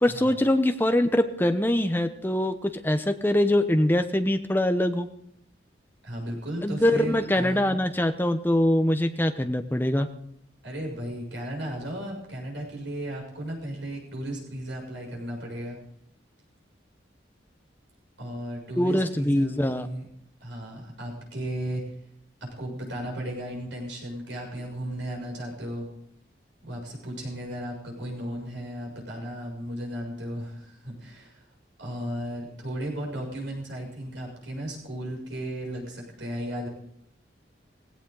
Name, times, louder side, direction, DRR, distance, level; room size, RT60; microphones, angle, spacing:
voice 1, 0.0-5.1 6.6-10.1 18.8-19.9, left 1 dB, 10° left, 8 dB, 0.8 m, -23 dB
voice 2, 6.0-7.8 10.6-15.8 18.2-20.1 20.4-21.8 22.6-25.9 26.6-31.4 31.8-36.7, right 1 dB, 85° right, 0 dB, 6.8 m, -35 dB
17.5 x 16.5 x 3.9 m, 0.72 s
head